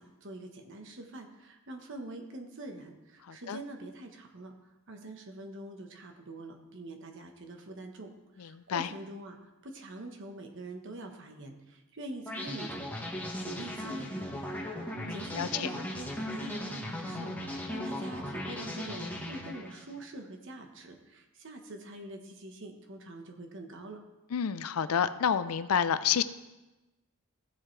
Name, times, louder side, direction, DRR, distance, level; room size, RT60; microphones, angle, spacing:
voice 1, 0.0-24.0, right 1 dB, 60° right, 4 dB, 1.2 m, -45 dB
voice 2, 3.3-3.6 8.4-8.9 15.0-15.7 24.3-26.2, left 8 dB, 80° left, 14 dB, 0.5 m, -29 dB
sound 1, 12.3-19.9, left 1 dB, 10° left, 1.3 m, -37 dB
15.5 x 7.4 x 3.3 m, 1.1 s
head